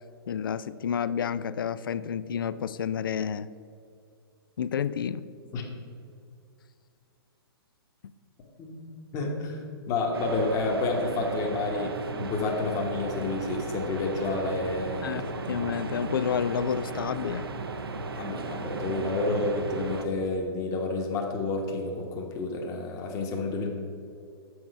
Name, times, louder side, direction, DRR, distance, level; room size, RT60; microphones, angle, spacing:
voice 1, 0.3-3.5 4.6-5.2 15.0-17.5, left 8 dB, 60° left, 16 dB, 0.4 m, -30 dB
voice 2, 8.6-9.6 9.9-15.7 18.2-23.7, left 3 dB, 25° left, 1 dB, 1.2 m, -30 dB
sound 1, 10.1-20.1, right 3 dB, 70° right, 0.7 m, -35 dB
7.2 x 6.3 x 5.8 m, 2.4 s
figure-of-eight pair, 115°, 13 cm